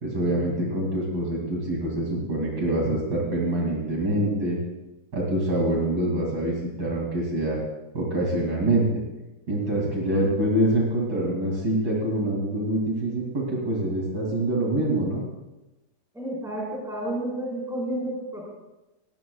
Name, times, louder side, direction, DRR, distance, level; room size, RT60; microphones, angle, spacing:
voice 1, 0.0-4.6 5.1-7.6 7.9-8.9 9.5-15.2, right 1 dB, 80° right, -3 dB, 3.5 m, -25 dB
voice 2, 16.1-18.5, right 1 dB, ahead, -5 dB, 4.5 m, -31 dB
20.5 x 17.0 x 2.4 m, 1.0 s
omnidirectional pair, 1.8 m